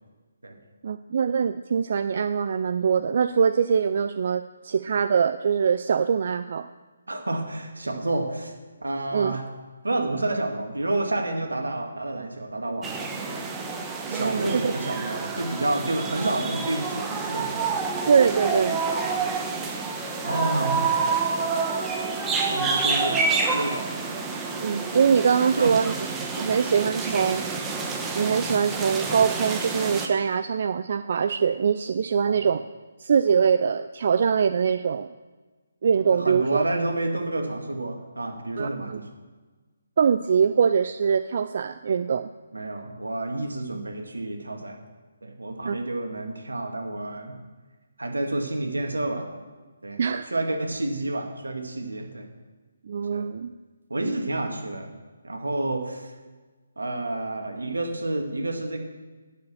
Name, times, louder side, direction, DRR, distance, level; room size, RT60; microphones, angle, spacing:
voice 1, 0.8-6.7 9.1-9.4 14.1-14.7 18.1-18.8 24.6-25.9 26.4-27.4 28.2-32.6 33.0-35.1 35.8-36.6 38.6-39.0 40.0-42.3 45.6-45.8 50.0-50.3 52.9-53.5, right 6 dB, 50° right, 11 dB, 0.4 m, -23 dB
voice 2, 7.1-8.5 8.8-9.5 9.8-13.5 14.1-17.6 20.2-21.1 22.5-24.1 25.6-25.7 32.2-32.4 36.1-39.0 42.5-44.8 45.2-47.3 48.0-49.3 49.8-50.0 50.3-52.3 53.1-53.3 53.9-54.9 55.2-56.1 56.8-58.8, right 2 dB, 80° right, 3 dB, 2.1 m, -29 dB
sound 1, 12.8-30.1, right 4 dB, 10° right, 1.1 m, -28 dB
10.5 x 7.0 x 7.0 m, 1.3 s
figure-of-eight pair, 145°, 0 cm